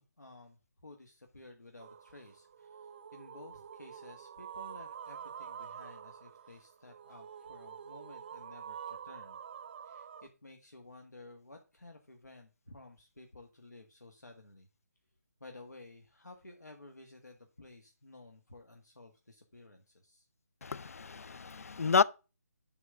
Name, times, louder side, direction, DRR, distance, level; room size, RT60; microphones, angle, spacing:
voice 1, 0.0-9.4 9.8-14.7 15.4-20.3, left 2 dB, 85° left, 1.6 m, -54 dB
sound 1, 1.8-10.3, right 8 dB, 35° right, 0.7 m, -47 dB
voice 2, 20.6-22.0, left 5 dB, 60° left, 0.5 m, -29 dB
11.0 x 3.8 x 6.8 m
figure-of-eight pair, 150°, 9 cm